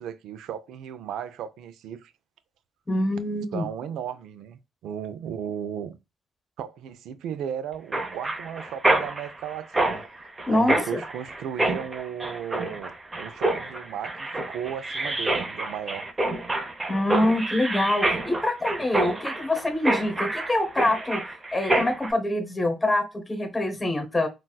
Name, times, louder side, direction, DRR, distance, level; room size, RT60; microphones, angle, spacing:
voice 1, 0.0-2.1 3.5-6.0 6.6-10.0 10.5-16.1, right 9 dB, 80° right, 0.4 m, -35 dB
voice 2, 2.9-3.7 10.5-11.0 16.9-21.2 21.5-24.3, left 1 dB, 15° left, 0.9 m, -25 dB
Mechanisms, 7.9-22.1, right 2 dB, 20° right, 0.7 m, -28 dB
3.9 x 2.3 x 2.3 m
cardioid pair, 90°, 0 cm